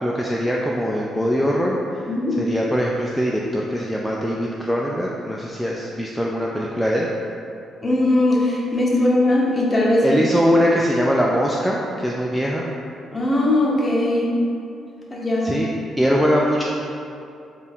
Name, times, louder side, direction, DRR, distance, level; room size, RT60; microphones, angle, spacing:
voice 1, 0.0-7.1 10.0-12.7 15.4-15.7 16.0-16.6, equal, ahead, -4 dB, 0.3 m, -22 dB
voice 2, 2.1-2.4 7.8-10.1 13.1-14.3 15.1-15.5, left 1 dB, 25° left, -4 dB, 0.8 m, -19 dB
4.2 x 2.4 x 3.5 m, 2.6 s
cardioid pair, 90°, 0 cm